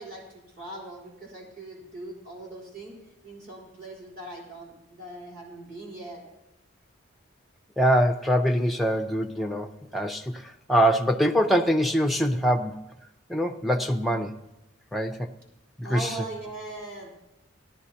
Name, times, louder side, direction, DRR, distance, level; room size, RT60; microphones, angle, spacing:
voice 1, 0.0-2.9 3.2-6.2 15.8-17.1, right 2 dB, 45° right, -4 dB, 3.5 m, -40 dB
voice 2, 7.8-12.8 13.3-14.4 14.9-15.3 15.8-16.1, equal, ahead, 3 dB, 0.5 m, -24 dB
18.0 x 11.5 x 2.8 m, 0.91 s
head